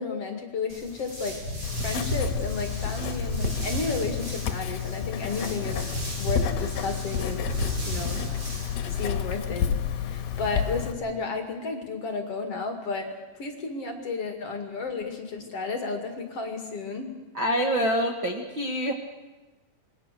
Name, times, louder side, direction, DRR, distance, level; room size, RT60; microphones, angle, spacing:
voice 1, 0.0-1.4 1.8-5.8 6.2-7.5 7.8-8.2 8.9-13.1 13.4-17.1, left 4 dB, 40° left, 4 dB, 2.5 m, -32 dB
sound 1, 0.7-9.0, left 1 dB, 30° right, 7.9 m, -33 dB
Writing, 1.6-10.9, left 9 dB, 65° left, 2.8 m, -31 dB
voice 2, 17.3-18.9, equal, 85° right, 2 dB, 1.0 m, -26 dB
27.0 x 21.5 x 6.8 m, 1.2 s
omnidirectional pair, 5.2 m